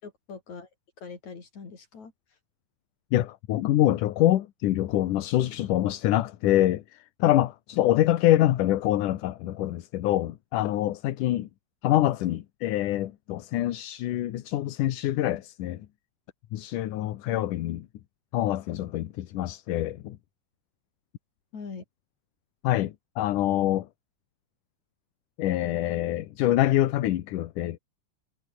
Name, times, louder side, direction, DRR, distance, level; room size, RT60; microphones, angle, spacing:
voice 1, 0.0-0.7 1.0-2.1 21.5-21.8, left 5 dB, 60° left, 5.9 m, -42 dB
voice 2, 3.1-11.5 11.8-15.8 16.5-17.9 18.3-20.2 22.6-23.9 25.4-27.8, left 14 dB, 75° left, 2.7 m, -25 dB
omnidirectional pair, 3.7 m